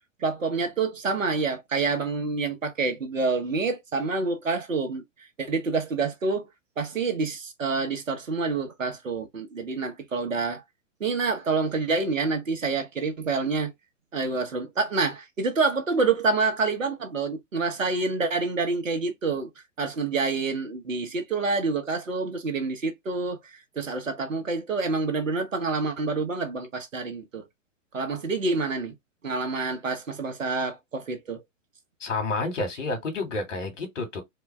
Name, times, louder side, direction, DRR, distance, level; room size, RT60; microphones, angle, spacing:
voice 1, 0.2-5.0 5.4-6.4 6.8-10.6 11.0-13.7 14.1-19.5 19.8-27.4 27.9-28.9 29.2-31.4, right 4 dB, 80° right, 1.4 m, -27 dB
voice 2, 32.0-34.2, left 3 dB, 70° left, 2.2 m, -29 dB
4.4 x 2.4 x 3.4 m
figure-of-eight pair, 105°, 38 cm